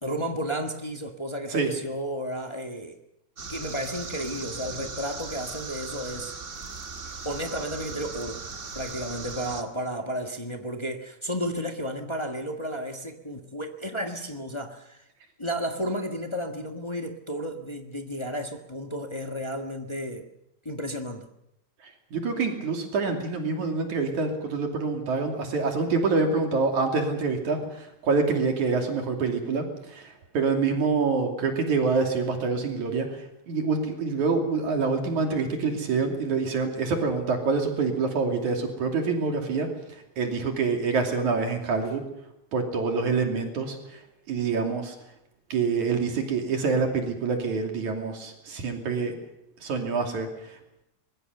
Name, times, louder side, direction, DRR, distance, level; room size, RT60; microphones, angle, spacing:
voice 1, 0.0-3.0 3.5-6.3 7.2-8.4 8.7-15.1 15.4-20.3 20.6-21.3, equal, 35° left, 0.4 m, -32 dB
sound 1, 3.4-9.6, right 4 dB, 30° right, 1.7 m, -38 dB
voice 2, 22.1-33.1 33.5-39.7 40.2-42.0 42.5-43.8 44.3-45.0 45.5-49.2 49.6-50.3, right 4 dB, 75° right, 4.2 m, -26 dB
23.5 x 21.5 x 6.7 m
omnidirectional pair, 3.4 m